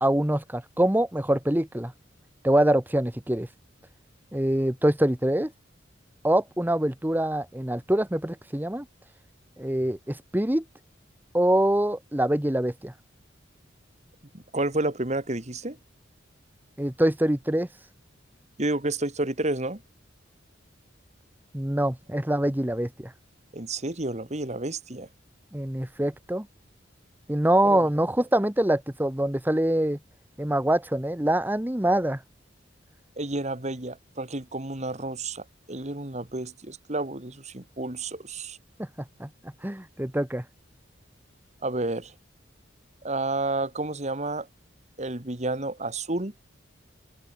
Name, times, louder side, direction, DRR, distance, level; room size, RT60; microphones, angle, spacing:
voice 1, 0.0-1.9 2.4-3.5 4.3-5.5 6.2-8.9 9.6-10.6 11.3-12.9 16.8-17.7 21.5-23.1 25.5-26.5 27.3-30.0 30.4-32.2 38.8-38.9 39.2-39.3 39.6-40.4, right 1 dB, 10° right, 1.1 m, -24 dB
voice 2, 14.3-15.8 18.6-19.8 23.5-25.1 27.6-27.8 33.2-38.6 41.6-42.1 43.0-44.5 45.0-46.3, right 2 dB, 35° right, 2.1 m, -30 dB
head